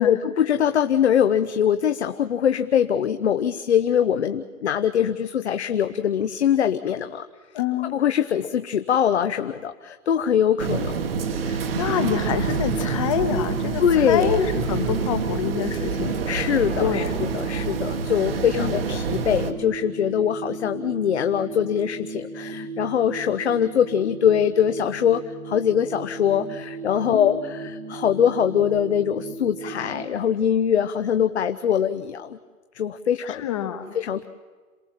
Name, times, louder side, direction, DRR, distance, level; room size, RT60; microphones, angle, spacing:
voice 1, 0.0-7.3 7.8-11.1 11.4-11.9 13.8-14.3 16.3-32.4 32.7-33.5 33.9-34.2, left 9 dB, 50° left, 9 dB, 0.8 m, -23 dB
voice 2, 7.5-7.9 11.7-16.2 16.8-17.2 18.5-18.8 27.1-27.4 33.3-34.0, left 9 dB, 20° left, 9 dB, 1.2 m, -26 dB
sound 1, 10.6-19.5, right 5 dB, 40° right, 1.3 m, -27 dB
sound 2, 11.1-30.1, right 3 dB, 85° right, 3.6 m, -35 dB
27.0 x 18.0 x 7.4 m, 1.5 s
hypercardioid pair, 165°, 43 cm